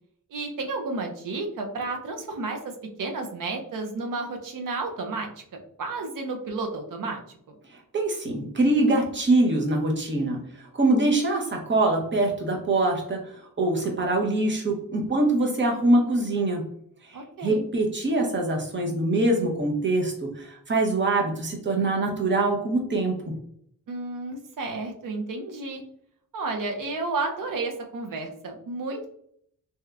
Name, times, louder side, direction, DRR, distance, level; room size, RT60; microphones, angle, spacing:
voice 1, 0.3-2.7 3.0-7.2 17.1-17.6 23.9-25.8 26.3-29.1, right 3 dB, 70° right, 3 dB, 0.7 m, -32 dB
voice 2, 7.9-10.4 10.7-16.6 17.1-23.1, right 2 dB, 35° right, 0 dB, 0.8 m, -24 dB
3.3 x 2.8 x 2.3 m, 0.67 s
wide cardioid pair, 165°, 34 cm